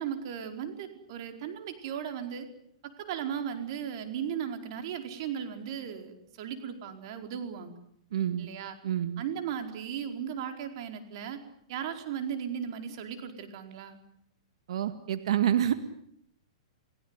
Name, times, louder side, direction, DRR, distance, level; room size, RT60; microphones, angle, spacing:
voice 1, 0.0-2.5 2.8-7.7 8.4-8.8 9.2-11.4 11.7-14.0, right 8 dB, 50° right, 6 dB, 4.7 m, -36 dB
voice 2, 8.1-8.5 8.8-9.2 14.7-15.7, right 10 dB, 70° right, 10 dB, 2.0 m, -27 dB
29.0 x 18.0 x 9.9 m, 0.71 s
hypercardioid pair, 145°, 3 cm